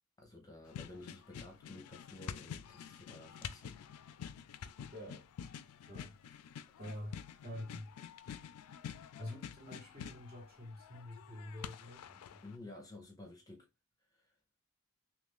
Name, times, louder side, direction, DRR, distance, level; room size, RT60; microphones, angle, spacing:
voice 1, 0.2-3.8 12.4-13.7 14.1-14.3, left 2 dB, 15° left, 0.7 m, -52 dB
sound 1, 0.7-12.6, left 8 dB, 85° left, 0.4 m, -48 dB
voice 2, 4.9-5.3 5.9-6.1 6.8-7.9 9.2-12.4, left 1 dB, 40° right, 1.2 m, -47 dB
3.1 x 2.5 x 3.6 m
head